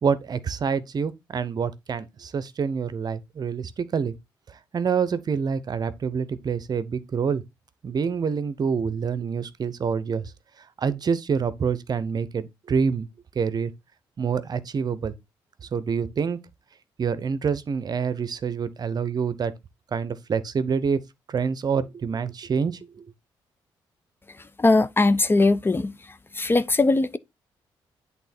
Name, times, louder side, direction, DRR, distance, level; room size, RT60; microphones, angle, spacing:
voice 1, 0.0-4.1 4.5-7.4 7.8-10.3 10.8-13.1 13.3-13.7 14.2-15.1 15.7-16.4 17.0-19.5 19.9-21.0 21.3-23.0, right 6 dB, 50° right, 0.7 m, -26 dB
voice 2, 24.6-25.9 26.4-27.2, left 2 dB, 25° left, 0.5 m, -20 dB
8.2 x 3.6 x 4.3 m
supercardioid pair, 65°, 9 cm